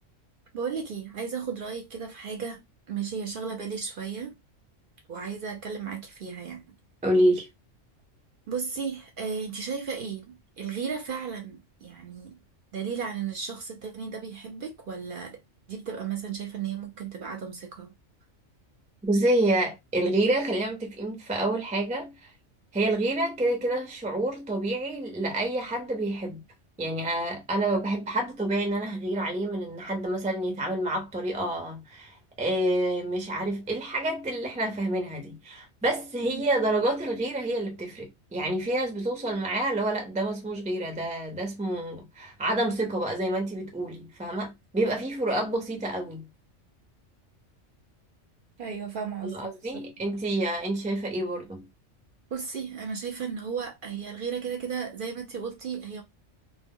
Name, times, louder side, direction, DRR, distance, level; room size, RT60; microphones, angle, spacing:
voice 1, 0.5-4.3 5.1-6.6 8.5-12.4 12.7-15.4 15.7-17.9 36.3-36.4 48.6-49.5 52.3-56.0, right 6 dB, 55° right, 0.7 m, -34 dB
voice 2, 7.0-7.5 19.0-22.3 22.7-26.4 26.8-46.3 49.2-51.7, right 1 dB, 10° right, 0.3 m, -28 dB
2.1 x 2.1 x 3.5 m
omnidirectional pair, 1.3 m